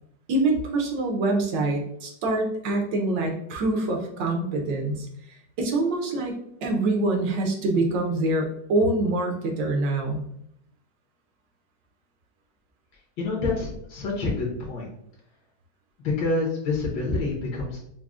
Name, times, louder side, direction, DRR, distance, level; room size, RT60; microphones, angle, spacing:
voice 1, 0.3-5.1 5.6-6.3 6.6-10.2, right 2 dB, 75° right, 2 dB, 1.3 m, -25 dB
voice 2, 13.2-14.9 16.0-17.8, left 3 dB, 75° left, -2 dB, 1.4 m, -27 dB
5.9 x 2.0 x 2.3 m, 0.74 s
omnidirectional pair, 2.0 m